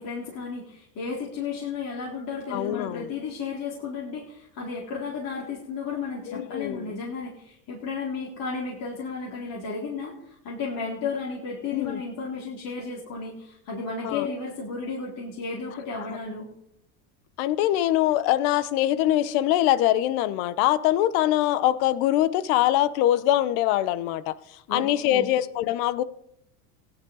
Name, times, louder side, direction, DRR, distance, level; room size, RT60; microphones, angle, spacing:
voice 1, 0.0-16.5 24.7-25.3, left 4 dB, 45° left, 4.0 m, -33 dB
voice 2, 2.5-3.1 6.3-6.9 11.7-12.0 14.0-14.3 17.4-26.0, left 13 dB, 65° left, 1.0 m, -23 dB
16.5 x 10.5 x 4.0 m
supercardioid pair, 115°, 45 cm